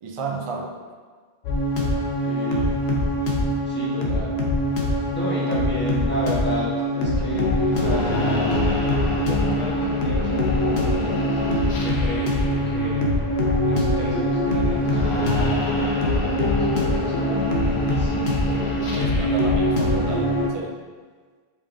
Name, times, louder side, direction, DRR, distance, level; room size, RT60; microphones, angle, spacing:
voice 1, 0.0-0.8 18.9-20.8, right 4 dB, 55° right, 0 dB, 0.3 m, -32 dB
sound 1, 1.4-20.5, left 1 dB, 85° left, 1.0 m, -22 dB
voice 2, 2.2-2.7 3.6-4.3 5.1-11.2 11.8-13.1 13.6-19.6, left 1 dB, 10° left, -8 dB, 1.1 m, -33 dB
5.1 x 3.6 x 2.6 m, 1.5 s
omnidirectional pair, 1.0 m